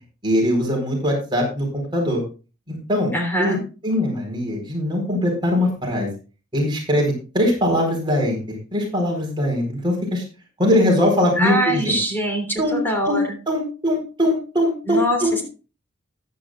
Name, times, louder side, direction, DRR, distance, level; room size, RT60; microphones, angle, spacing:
voice 1, 0.2-2.2 2.7-3.1 3.4-3.6 3.8-6.1 6.5-10.2 10.6-11.9 12.6-12.8 13.0-15.4, left 1 dB, 20° right, 0 dB, 4.3 m, -21 dB
voice 2, 3.1-3.6 11.4-13.2 14.9-15.5, equal, 10° left, 2 dB, 3.1 m, -23 dB
14.5 x 11.0 x 2.4 m, 0.33 s
head